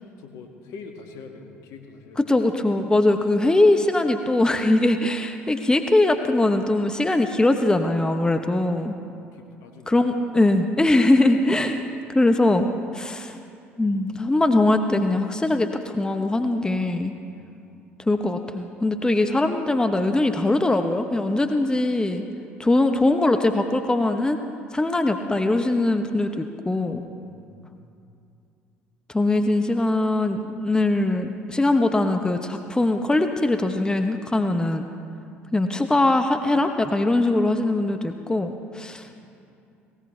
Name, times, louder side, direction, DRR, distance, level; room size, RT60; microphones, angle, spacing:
voice 1, 0.0-2.3 9.1-10.0 17.3-17.5 27.3-27.9 39.0-39.1, left 4 dB, 55° left, 4 dB, 1.8 m, -44 dB
voice 2, 2.2-9.0 9.9-11.8 12.1-12.7 12.9-13.4 13.8-17.1 18.1-22.2 22.6-24.4 24.7-27.0 29.1-34.9 35.5-39.1, left 2 dB, 10° left, 6 dB, 0.9 m, -21 dB
19.5 x 18.5 x 3.3 m, 2.6 s
figure-of-eight pair, 55°, 7 cm